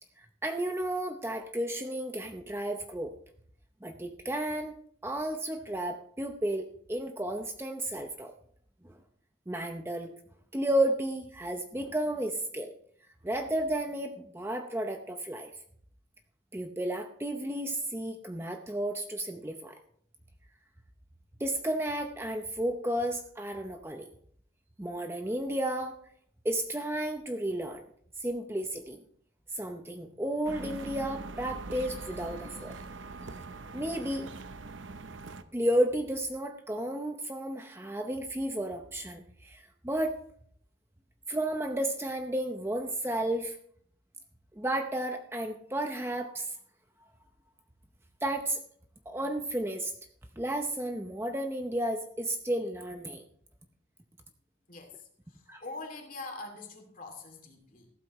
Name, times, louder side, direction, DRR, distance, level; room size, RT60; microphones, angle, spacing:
voice 1, 0.2-3.1 3.8-4.8 5.0-8.3 8.8-9.0 9.5-10.2 10.5-12.7 13.2-15.5 16.5-19.8 21.4-24.1 24.8-26.0 26.4-27.8 28.2-29.0 29.5-32.8 33.7-34.3 35.5-40.2 41.3-43.6 44.5-46.6 48.2-48.6 49.1-49.9 50.4-53.2 55.5-55.6, right 1 dB, 10° right, 5 dB, 0.7 m, -32 dB
sound 1, 30.4-35.4, right 3 dB, 80° right, 0.8 m, -42 dB
voice 2, 54.7-57.9, left 3 dB, 45° left, 3 dB, 2.6 m, -44 dB
15.0 x 12.5 x 3.1 m, 0.63 s
head